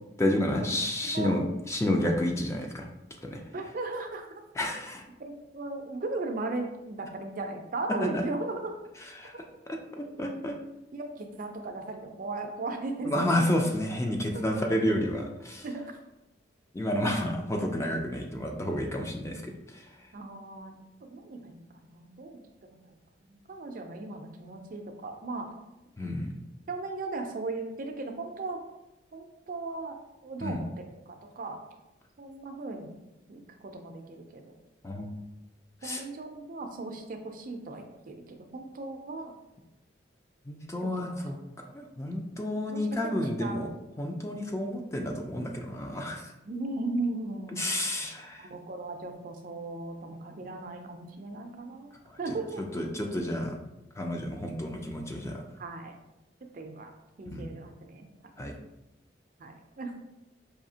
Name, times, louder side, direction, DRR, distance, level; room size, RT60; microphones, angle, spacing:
voice 1, 0.2-2.9 3.2-3.4 4.6-5.0 8.1-8.2 9.1-9.4 9.7-10.5 13.1-15.7 16.7-20.0 26.0-26.3 30.4-30.6 34.8-35.2 35.8-36.0 40.5-41.4 41.7-43.7 44.0-46.3 47.6-48.5 52.1-52.4 52.7-53.6 54.0-55.4 57.3-57.5 58.4-58.5, left 1 dB, 15° left, 2 dB, 0.4 m, -30 dB
voice 2, 3.5-4.4 5.2-8.8 9.3-9.4 10.9-13.7 15.6-16.0 16.9-17.0 20.1-20.7 21.0-25.5 26.0-26.1 26.7-28.6 29.1-31.6 32.2-32.9 33.3-34.5 35.8-39.3 40.8-41.3 42.7-43.1 43.4-43.7 46.4-47.8 48.4-51.9 52.2-52.6 55.6-56.0 56.5-56.9 57.2-58.1 59.4-60.0, right 2 dB, 45° right, 5 dB, 0.4 m, -37 dB
4.9 x 2.7 x 2.7 m, 0.93 s
head